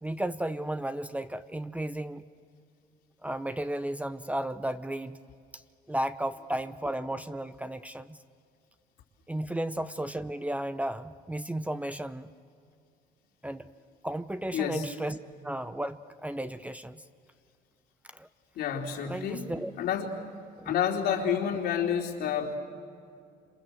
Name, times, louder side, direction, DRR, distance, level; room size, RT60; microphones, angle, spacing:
voice 1, 0.0-2.2 3.2-5.2 5.9-8.2 9.3-12.3 13.4-13.7 14.0-15.2 15.4-17.0 18.1-18.3 19.1-19.7 20.6-20.7, right 1 dB, 10° right, 11 dB, 0.7 m, -34 dB
voice 2, 14.5-14.9 18.6-19.5 19.8-20.1 20.7-22.5, left 8 dB, 75° left, 0 dB, 3.6 m, -29 dB
28.0 x 27.0 x 7.7 m, 2.4 s
cardioid pair, 110°, 17 cm